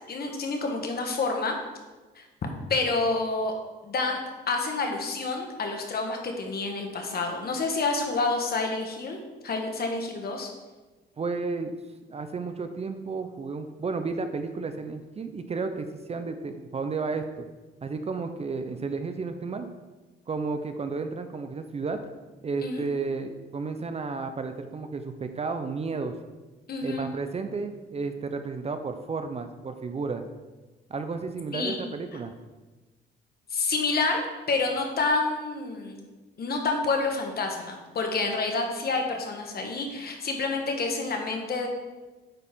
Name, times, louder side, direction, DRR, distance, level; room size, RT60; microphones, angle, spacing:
voice 1, 0.1-1.6 2.1-2.2 2.7-3.5 3.8-4.2 4.5-10.5 22.6-22.8 26.7-27.1 31.5-31.8 33.5-34.2 34.5-36.0 36.4-41.7, left 3 dB, 50° left, 3 dB, 1.3 m, -28 dB
voice 2, 11.2-11.7 12.1-17.5 17.8-19.7 20.3-22.0 22.4-26.1 26.8-30.3 30.9-32.3, right 4 dB, 30° right, 8 dB, 0.5 m, -32 dB
9.1 x 4.2 x 3.6 m, 1.2 s
cardioid pair, 90°, 20 cm